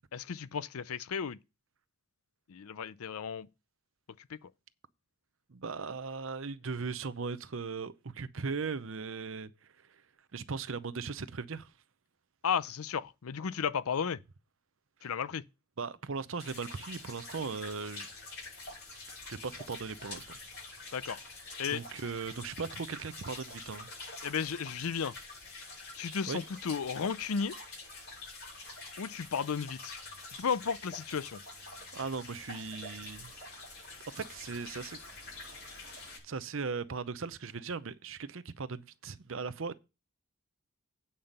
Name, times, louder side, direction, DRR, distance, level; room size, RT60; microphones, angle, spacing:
voice 1, 0.1-1.4 2.5-3.5 4.3-4.4 12.4-14.2 15.0-15.4 20.9-21.2 21.6-21.8 24.2-25.1 26.0-27.5 29.0-30.0 30.4-31.4, left 6 dB, 75° left, 0.5 m, -34 dB
voice 2, 5.5-10.0 10.3-11.7 15.0-15.1 15.8-18.1 19.1-20.3 21.7-23.9 26.3-26.4 31.9-33.3 34.1-35.0 36.2-39.8, right 4 dB, 60° right, 0.7 m, -38 dB
sound 1, 16.4-36.2, left 3 dB, 50° left, 6.2 m, -46 dB
8.8 x 5.6 x 6.6 m
head